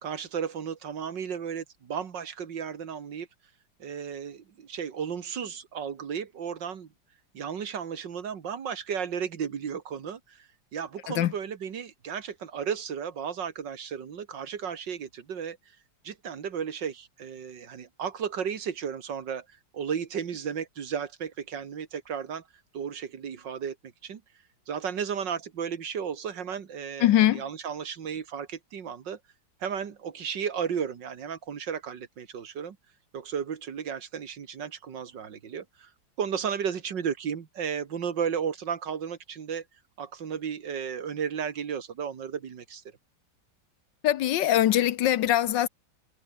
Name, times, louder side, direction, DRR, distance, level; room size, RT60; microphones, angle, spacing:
voice 1, 0.0-3.3 3.8-6.9 7.3-15.6 16.0-19.5 19.7-22.4 22.7-23.8 24.0-24.2 24.7-29.2 29.6-32.8 33.1-35.9 36.2-39.6 40.0-42.8, right 7 dB, 65° right, 2.3 m, -34 dB
voice 2, 27.0-27.4 44.0-45.7, left 12 dB, 70° left, 1.4 m, -22 dB
omnidirectional pair, 2.1 m